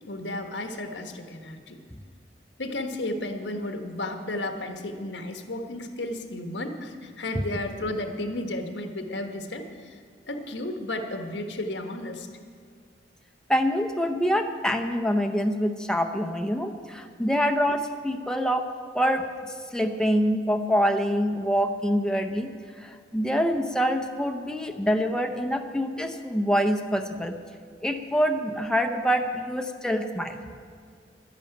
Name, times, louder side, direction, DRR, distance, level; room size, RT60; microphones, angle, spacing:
voice 1, 0.1-1.8 2.6-9.9 10.2-12.3, left 1 dB, 90° left, 6 dB, 1.4 m, -33 dB
voice 2, 13.5-18.7 18.9-19.3 19.7-22.5 22.8-27.4 27.8-30.4, equal, 5° left, 5 dB, 0.7 m, -25 dB
11.5 x 10.5 x 8.8 m, 2.1 s
head